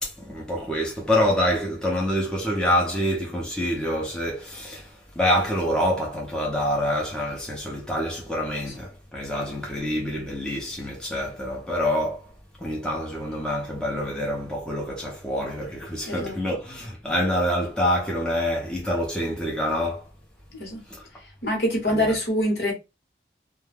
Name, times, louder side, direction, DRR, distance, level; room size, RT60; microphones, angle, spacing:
voice 1, 0.0-12.3 12.6-20.0 20.9-21.1 21.9-22.1, equal, 5° left, 0.6 m, -26 dB
voice 2, 16.1-16.4 20.5-20.8 21.4-22.7, equal, 60° left, 1.1 m, -24 dB
2.2 x 2.2 x 3.3 m
head